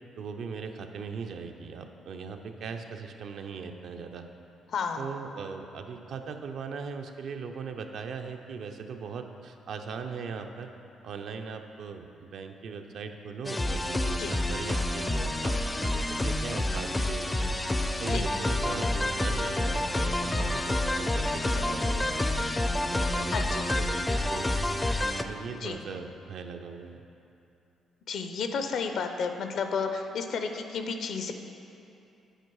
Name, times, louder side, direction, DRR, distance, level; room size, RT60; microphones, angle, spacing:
voice 1, 0.2-4.3 5.0-10.7 11.0-17.5 18.0-22.5 22.9-24.7 25.3-27.0, right 5 dB, 70° right, 5 dB, 0.5 m, -39 dB
voice 2, 4.7-5.0 14.2-14.3 18.1-18.2 23.3-23.6 25.6-25.8 28.1-31.3, left 5 dB, 65° left, 6 dB, 0.6 m, -32 dB
sound 1, 13.4-25.2, left 1 dB, 15° left, 0.4 m, -28 dB
8.9 x 4.7 x 4.6 m, 2.8 s
cardioid pair, 90°, 0 cm